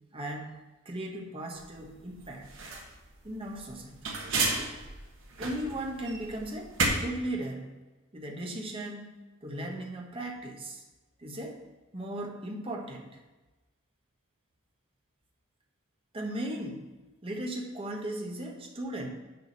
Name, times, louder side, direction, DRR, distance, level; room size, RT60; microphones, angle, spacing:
voice 1, 0.1-0.6 0.8-2.5 3.2-4.0 5.4-7.8 8.1-10.8 11.2-11.6 11.9-13.2 16.1-16.9 17.2-19.1, right 1 dB, 25° right, 1 dB, 1.1 m, -37 dB
sound 1, 1.6-6.9, right 4 dB, 65° right, 1.4 m, -33 dB
6.9 x 5.1 x 6.4 m, 1.1 s
head